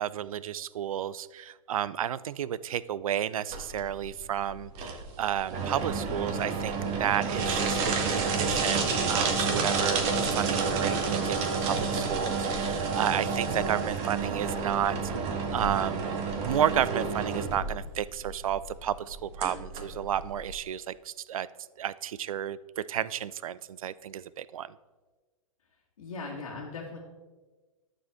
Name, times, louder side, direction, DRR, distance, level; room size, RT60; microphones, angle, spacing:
voice 1, 0.0-10.0 10.3-21.5 21.8-24.8, right 10 dB, 70° right, 18 dB, 0.4 m, -32 dB
sound 1, 3.5-20.5, right 4 dB, 35° right, 1.4 m, -30 dB
voice 2, 26.0-27.0, left 3 dB, 70° left, -4 dB, 1.7 m, -38 dB
11.0 x 6.9 x 3.5 m, 1.3 s
hypercardioid pair, 110°, 18 cm